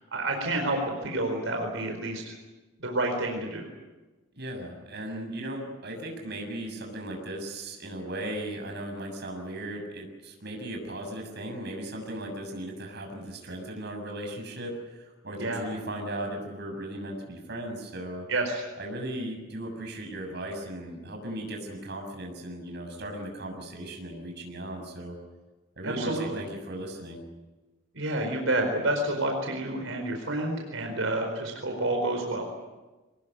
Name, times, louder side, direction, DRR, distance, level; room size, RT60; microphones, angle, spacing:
voice 1, 0.0-2.3 2.8-3.7 15.4-15.7 18.3-18.6 25.8-26.4 27.9-32.5, right 2 dB, 85° right, 2 dB, 4.6 m, -29 dB
voice 2, 4.4-18.3 18.8-25.2 25.8-27.2, right 1 dB, 55° right, 3 dB, 6.9 m, -37 dB
24.5 x 20.0 x 9.3 m, 1.2 s
head